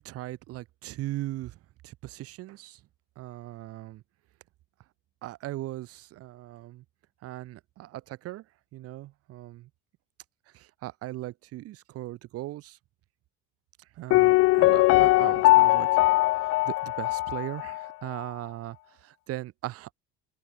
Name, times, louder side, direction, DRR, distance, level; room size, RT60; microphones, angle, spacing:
voice 1, 0.0-1.6 1.8-2.8 3.2-4.0 5.2-6.8 7.2-8.4 8.7-9.7 10.5-12.8 14.0-15.9 16.4-19.9, right 16 dB, 50° right, 3.2 m, -38 dB
Piano, 14.1-17.9 18.1-18.2, left 20 dB, 50° left, 0.6 m, -21 dB
open air
cardioid pair, 170°, 30 cm